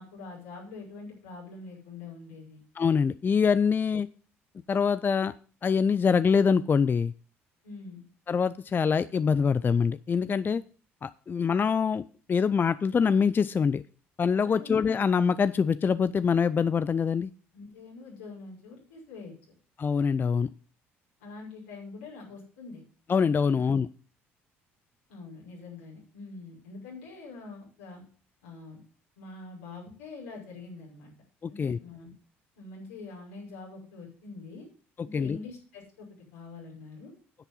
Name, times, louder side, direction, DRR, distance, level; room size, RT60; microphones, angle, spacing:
voice 1, 0.0-2.6 7.6-8.0 14.4-14.7 17.5-19.3 21.2-22.8 25.1-28.0 28.4-28.8 29.2-31.1 31.5-32.1 32.6-34.7 35.0-36.1 36.3-37.1, left 3 dB, 85° left, -4 dB, 5.6 m, -44 dB
voice 2, 2.8-4.1 4.7-5.3 5.6-7.1 8.3-10.6 11.0-12.0 12.3-13.8 14.2-17.3 19.8-20.5 23.1-23.9 31.6-31.8 35.1-35.4, left 6 dB, 30° left, 16 dB, 0.4 m, -24 dB
10.0 x 8.2 x 5.5 m, 0.40 s
hypercardioid pair, 55°, 6 cm